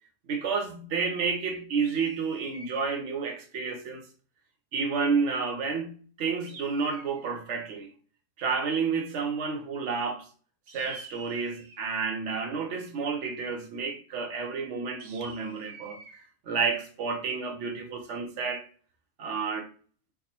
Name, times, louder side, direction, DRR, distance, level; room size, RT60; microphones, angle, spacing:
voice 1, 0.3-4.0 4.7-7.9 8.4-10.3 10.7-16.0 16.5-18.7 19.2-19.7, right 5 dB, 60° right, 1.0 m, -30 dB
sound 1, 1.8-3.0 6.4-7.5 10.7-11.9 15.0-16.2, right 4 dB, 80° right, 1.3 m, -47 dB
3.5 x 2.0 x 4.2 m
omnidirectional pair, 1.4 m